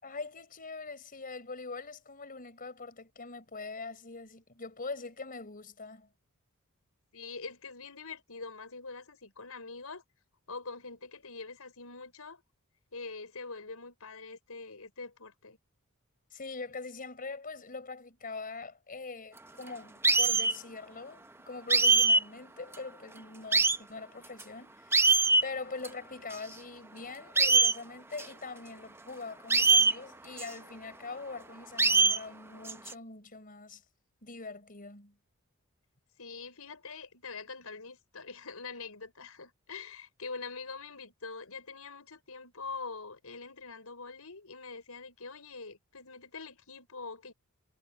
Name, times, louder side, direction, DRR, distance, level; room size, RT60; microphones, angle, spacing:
voice 1, 0.0-6.1 16.3-25.1 25.4-33.8 34.2-35.2, left 3 dB, 40° left, 4.6 m, -43 dB
voice 2, 7.1-10.0 10.5-12.4 12.9-15.6 36.2-47.3, left 4 dB, 80° left, 5.7 m, -44 dB
sound 1, 20.0-20.6 21.7-22.2 22.7-22.8 23.5-23.8 24.4-24.5 24.9-25.4 25.8-25.9 26.3-26.4 27.4-27.8 28.2-28.3 29.5-29.9 30.4-30.5 31.8-32.2 32.7-32.9, right 3 dB, 10° right, 0.6 m, -22 dB
head